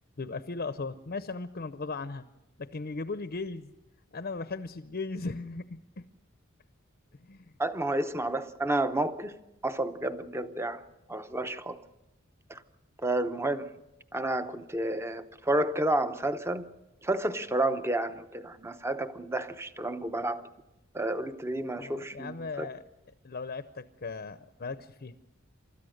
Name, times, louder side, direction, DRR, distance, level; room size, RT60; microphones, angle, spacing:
voice 1, 0.2-2.3 2.6-3.7 4.1-6.0 7.3-7.5 21.8-22.8 23.2-25.1, left 3 dB, 45° left, 0.7 m, -37 dB
voice 2, 7.6-9.4 9.6-10.8 11.1-11.8 12.5-12.6 13.0-13.7 14.1-16.7 17.0-20.4 20.9-22.7, right 1 dB, 10° right, 0.8 m, -30 dB
29.0 x 13.5 x 6.5 m
head